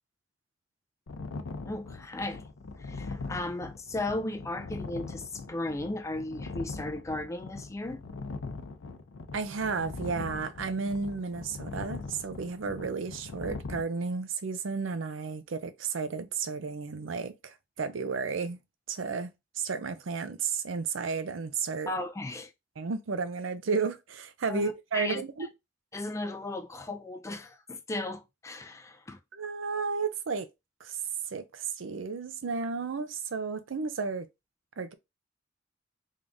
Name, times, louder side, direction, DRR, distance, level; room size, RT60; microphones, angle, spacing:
sound 1, 1.1-13.8, left 3 dB, 85° left, 0.6 m, -41 dB
voice 1, 1.6-2.5 2.8-8.0 21.9-22.5 24.5-25.5 25.9-29.2, left 2 dB, 15° left, 0.4 m, -36 dB
voice 2, 9.3-18.6 18.9-21.9 22.8-25.5 29.3-30.5 30.8-31.0 31.3-34.3 34.8-34.9, right 4 dB, 80° right, 0.5 m, -33 dB
3.6 x 2.6 x 3.5 m
head